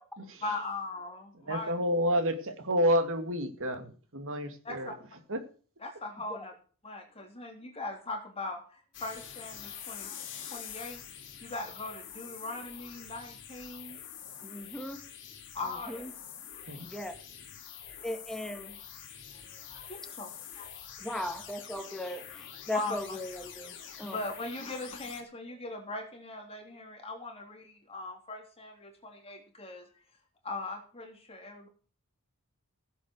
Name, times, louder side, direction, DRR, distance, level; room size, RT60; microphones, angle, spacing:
voice 1, 0.4-1.7 4.6-4.9 5.8-6.5 6.8-10.2 10.5-11.0 11.4-14.1 15.5-16.1 16.5-16.7 18.0-18.1 19.5-20.7 21.0-21.3 22.7-23.2 24.0-30.0 30.4-31.7, left 2 dB, 25° left, 2 dB, 3.5 m, -40 dB
voice 2, 1.5-4.9 5.3-5.4 16.7-16.9, equal, 65° right, 8 dB, 2.4 m, -29 dB
sound 1, 8.9-25.2, left 8 dB, 60° left, 3.6 m, -46 dB
voice 3, 14.4-15.0 15.9-16.1 16.8-17.1 18.0-18.7 21.0-24.2, left 1 dB, 5° left, 5 dB, 1.9 m, -37 dB
16.5 x 8.2 x 6.5 m, 0.41 s
head